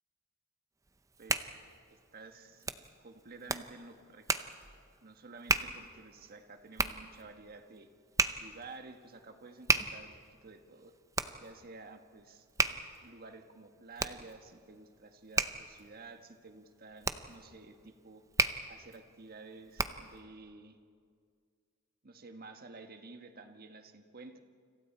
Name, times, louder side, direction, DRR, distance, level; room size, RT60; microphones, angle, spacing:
Hands, 0.9-20.2, right 3 dB, 15° right, 0.7 m, -36 dB
voice 1, 1.2-1.6 1.9-4.5 5.0-7.9 8.4-10.1 10.4-10.9 11.4-18.2 18.7-20.8 22.0-24.4, right 3 dB, 45° right, 7 dB, 1.4 m, -52 dB
29.0 x 26.5 x 4.4 m, 2.1 s
head